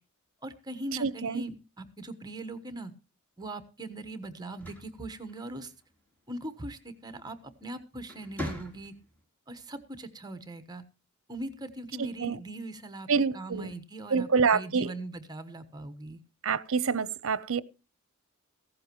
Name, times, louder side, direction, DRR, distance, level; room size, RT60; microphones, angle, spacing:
voice 1, 0.4-2.9 3.4-5.7 6.3-8.9 9.5-10.8 11.3-13.1 13.3-16.2, right 2 dB, 20° right, 1.2 m, -40 dB
voice 2, 1.0-1.4 12.0-12.4 13.1-13.7 14.1-14.9 16.4-17.6, right 5 dB, 70° right, 0.7 m, -27 dB
sound 1, 4.4-5.9 7.4-7.6 8.0-9.2, equal, 10° left, 3.1 m, -41 dB
15.5 x 13.5 x 3.0 m
head